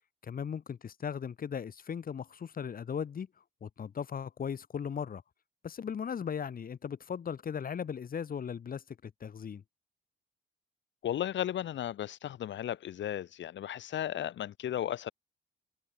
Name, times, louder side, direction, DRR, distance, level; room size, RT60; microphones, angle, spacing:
voice 1, 0.2-3.3 3.6-5.2 5.6-9.6, left 7 dB, 45° left, 1.9 m, -37 dB
voice 2, 11.0-15.1, left 11 dB, 65° left, 2.1 m, -35 dB
cardioid pair, 90°, 20 cm